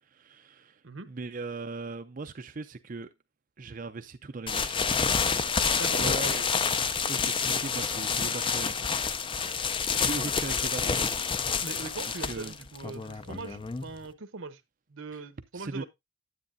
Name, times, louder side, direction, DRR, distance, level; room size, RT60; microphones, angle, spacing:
voice 1, 0.0-3.1 3.6-4.8 5.9-6.3 6.8-11.2 12.2-12.5 15.5-15.8, right 3 dB, 40° right, 0.5 m, -39 dB
sound 1, 4.5-14.1, left 6 dB, 25° left, 0.5 m, -28 dB
voice 2, 5.8-6.5 11.6-14.6 14.9-15.8, right 3 dB, 75° right, 1.0 m, -40 dB
9.7 x 8.6 x 2.6 m
head